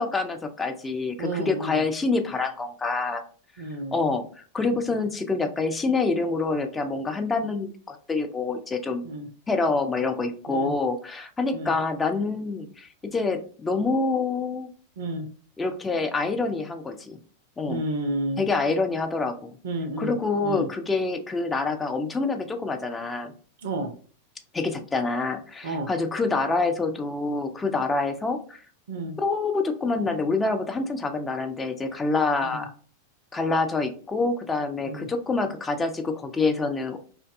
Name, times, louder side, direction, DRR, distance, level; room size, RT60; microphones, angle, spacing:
voice 1, 0.0-3.2 3.9-9.1 9.5-14.7 15.6-17.2 17.6-17.8 18.4-19.6 20.0-23.3 24.5-28.6 29.2-32.7 33.3-37.0, left 3 dB, 15° left, 7 dB, 0.3 m, -26 dB
voice 2, 1.2-1.8 3.6-4.0 9.0-9.3 10.5-10.8 11.5-11.7 15.0-15.3 17.7-18.4 19.6-20.1 20.4-20.7 23.6-23.9 25.6-25.9 28.9-29.2 32.4-32.6 34.8-35.1, right 1 dB, 60° right, 7 dB, 0.4 m, -31 dB
2.5 x 2.2 x 2.5 m, 0.43 s
figure-of-eight pair, 90°, 0 cm